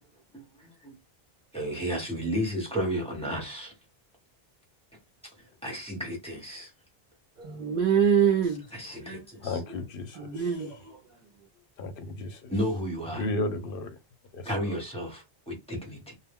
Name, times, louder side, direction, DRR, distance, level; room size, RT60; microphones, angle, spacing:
voice 1, 0.3-0.9 1.5-3.7 5.2-5.3 5.6-6.7 8.7-9.6 12.5-13.3 14.4-16.1, equal, 5° left, 1.0 m, -33 dB
voice 2, 7.4-8.6 10.1-11.0, right 7 dB, 55° right, 0.6 m, -25 dB
voice 3, 9.4-10.3 11.8-12.5 13.2-13.9 14.3-14.4, left 2 dB, 65° left, 0.7 m, -33 dB
2.1 x 2.1 x 3.5 m
omnidirectional pair, 1.0 m